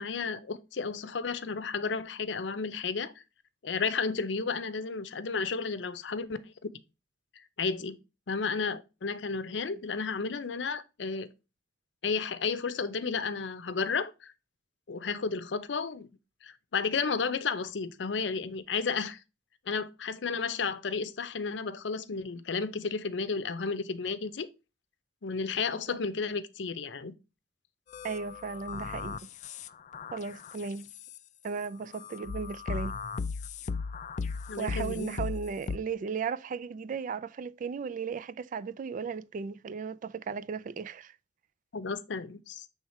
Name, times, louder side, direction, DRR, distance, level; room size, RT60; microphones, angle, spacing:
voice 1, 0.0-3.1 3.6-6.7 7.6-8.0 8.3-11.3 12.0-14.3 14.9-16.1 16.4-19.2 19.7-24.5 25.2-27.1 34.5-35.2 41.7-42.7, left 5 dB, 85° left, 0.6 m, -32 dB
sound 1, 27.9-31.2 31.9-35.8, left 5 dB, 40° left, 0.3 m, -37 dB
voice 2, 28.0-29.3 30.1-30.9 31.4-33.0 34.6-41.1, right 5 dB, 45° right, 0.3 m, -36 dB
7.2 x 3.4 x 4.2 m
head